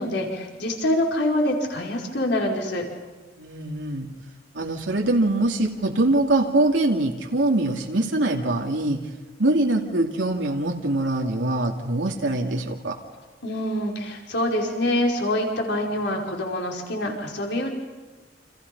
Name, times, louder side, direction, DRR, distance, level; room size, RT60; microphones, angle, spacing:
voice 1, 0.0-2.8 13.4-17.7, left 1 dB, 65° left, 0 dB, 5.3 m, -25 dB
voice 2, 3.4-4.1 4.5-9.0 9.4-13.0, right 2 dB, 90° right, 0 dB, 2.6 m, -23 dB
29.5 x 28.0 x 5.5 m, 1.3 s
head